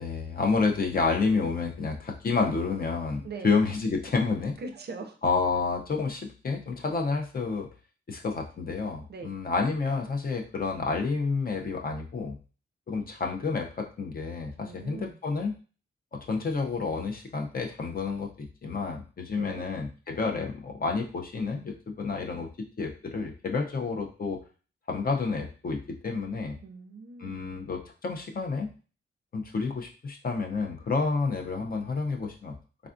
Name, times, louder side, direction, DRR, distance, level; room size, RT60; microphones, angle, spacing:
voice 1, 0.0-4.5 5.2-7.7 8.1-12.4 12.9-15.5 16.1-22.5 22.8-24.4 24.9-26.6 27.2-28.7 29.3-32.6, left 4 dB, 45° left, 2 dB, 0.5 m, -29 dB
voice 2, 3.2-3.6 4.6-5.2 9.1-9.3 14.6-15.2 19.3-19.7 26.6-27.7, right 4 dB, 55° right, 5 dB, 0.5 m, -41 dB
3.4 x 2.3 x 2.5 m, 0.37 s
wide cardioid pair, 130°, 21 cm